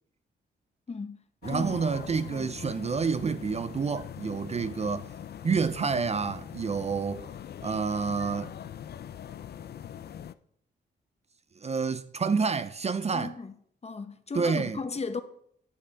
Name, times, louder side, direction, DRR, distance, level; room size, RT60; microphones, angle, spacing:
voice 1, 0.9-1.2 1.5-1.8 2.3-2.5 13.1-13.5 13.8-15.2, left 4 dB, 35° left, 0.8 m, -35 dB
sound 1, 1.4-10.3, left 9 dB, 55° left, 0.5 m, -42 dB
voice 2, 1.4-5.1 5.4-7.2 7.6-8.5 11.6-13.3 14.3-14.8, right 5 dB, 35° right, 0.5 m, -28 dB
9.9 x 6.6 x 4.6 m
cardioid pair, 85°, 20 cm